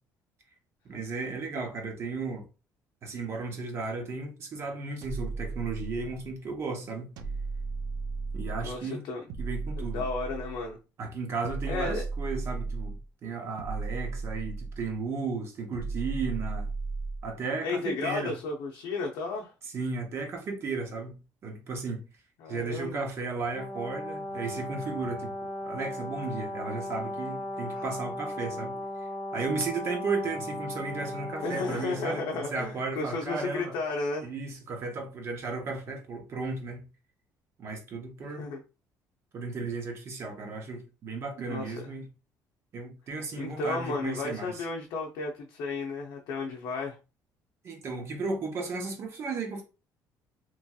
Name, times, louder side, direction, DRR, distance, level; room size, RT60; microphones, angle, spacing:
voice 1, 0.8-2.4 3.0-7.1 8.3-9.1 9.4-10.0 11.0-16.7 17.2-18.3 19.7-22.0 22.5-33.7 34.2-36.8 37.6-38.5 39.3-42.1 42.7-44.6 47.6-49.6, right 4 dB, 40° right, 0.7 m, -35 dB
sound 1, 5.0-6.3 7.2-8.8 9.3-10.7 11.4-13.1 13.6-15.0 15.7-17.3, right 4 dB, 70° right, 0.4 m, -35 dB
voice 2, 8.6-9.2 9.8-10.8 11.7-12.0 17.6-19.5 22.4-23.0 27.7-27.9 31.4-34.3 38.4-38.6 41.5-41.7 43.3-47.0, left 3 dB, 85° left, 0.5 m, -33 dB
Brass instrument, 23.5-32.3, left 1 dB, 10° left, 0.8 m, -37 dB
3.0 x 2.7 x 2.3 m
cardioid pair, 170°, 7 cm